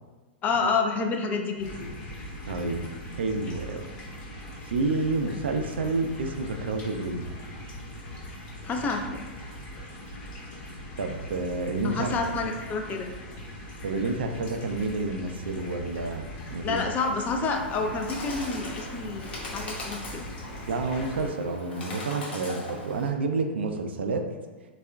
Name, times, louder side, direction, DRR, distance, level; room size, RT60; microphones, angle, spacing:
voice 1, 0.4-1.9 8.6-9.2 11.8-13.1 16.6-20.2, left 4 dB, 25° left, 3 dB, 0.3 m, -29 dB
sound 1, 1.6-21.3, left 1 dB, 45° left, 1.0 m, -41 dB
voice 2, 2.5-2.9 3.2-3.9 4.6-7.3 11.0-12.1 13.8-16.8 20.7-24.2, right 3 dB, 75° right, 5 dB, 0.3 m, -29 dB
Bird, 17.5-23.1, left 2 dB, 75° left, 0.9 m, -40 dB
3.4 x 2.3 x 2.2 m, 1.3 s
hypercardioid pair, 105°, 6 cm